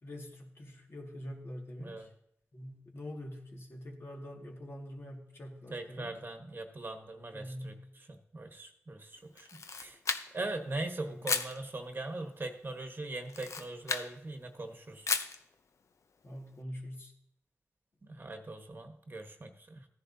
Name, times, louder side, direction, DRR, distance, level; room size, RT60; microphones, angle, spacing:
voice 1, 0.0-2.1 2.5-6.2 7.3-7.8 11.1-11.2 16.2-17.1, equal, 50° left, 0 dB, 2.0 m, -45 dB
voice 2, 5.7-7.7 8.1-10.0 10.3-15.1 18.0-19.9, right 2 dB, 40° right, 5 dB, 1.2 m, -41 dB
Camera, 9.4-10.5 11.2-11.6 13.2-14.1 15.1-15.4, left 5 dB, 70° left, 0.6 m, -34 dB
14.5 x 10.5 x 2.7 m, 0.75 s
cardioid pair, 60°, 5 cm